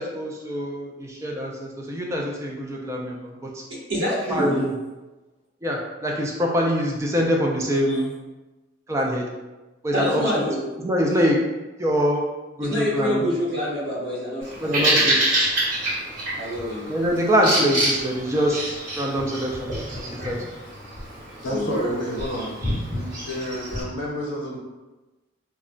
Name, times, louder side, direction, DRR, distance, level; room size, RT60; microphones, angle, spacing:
voice 1, 0.0-3.6 4.3-4.7 5.6-8.1 8.9-9.3 9.8-10.2 10.8-11.4 11.8-12.3 12.6-13.3 14.6-15.2 16.9-19.7 20.0-20.4, equal, 15° right, -1 dB, 0.3 m, -24 dB
voice 2, 3.7-4.6 7.9-8.0 9.9-10.6 12.6-15.1 16.3-16.9 21.5-22.3, equal, 75° right, -6 dB, 1.0 m, -27 dB
Bird vocalization bird call bird song, 14.4-23.8, right 1 dB, 45° right, 1.1 m, -27 dB
voice 3, 21.4-22.6 22.9-24.6, left 1 dB, 80° left, -3 dB, 0.7 m, -30 dB
2.3 x 2.1 x 3.6 m, 1.1 s
head